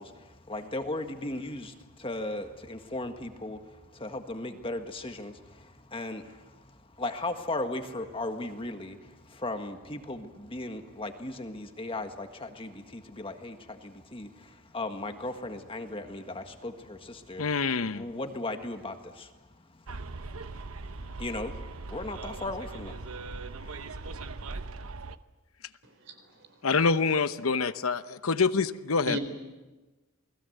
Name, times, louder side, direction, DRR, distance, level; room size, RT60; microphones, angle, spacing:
voice 1, 0.0-23.9, left 2 dB, 25° left, 6 dB, 1.7 m, -37 dB
voice 2, 17.4-18.0 26.6-29.2, left 4 dB, 80° left, 12 dB, 0.9 m, -26 dB
Bus, 19.9-25.2, right 3 dB, 75° right, 1.0 m, -40 dB
voice 3, 25.8-26.7 29.1-29.2, equal, 60° right, 7 dB, 4.0 m, -37 dB
29.0 x 20.5 x 8.0 m, 1.2 s
head